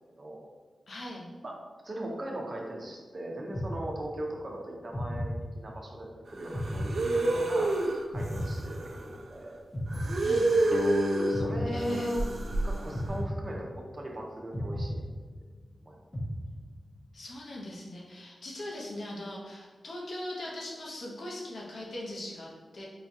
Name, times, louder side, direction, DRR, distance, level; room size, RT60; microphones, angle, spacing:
voice 1, 0.9-1.3 10.2-10.5 11.6-12.1 17.1-22.8, left 1 dB, 75° left, -3 dB, 0.9 m, -40 dB
voice 2, 1.8-5.3 5.5-7.7 8.1-9.6 11.1-12.2 12.6-15.0 15.8-16.0, right 1 dB, 45° right, -1 dB, 0.8 m, -38 dB
sound 1, 3.5-4.4 4.9-6.0 6.5-7.7 8.1-9.3 9.7-10.9 11.3-12.4 12.9-14.1 14.5-15.7 16.1-17.0, equal, 25° left, 0.7 m, -35 dB
sound 2, 6.4-9.1 9.9-11.4 11.8-13.1, right 2 dB, 70° right, 0.4 m, -29 dB
sound 3, 10.7-13.9, left 3 dB, 50° left, 0.4 m, -36 dB
4.8 x 2.3 x 2.8 m, 1.4 s
cardioid pair, 60°, 0 cm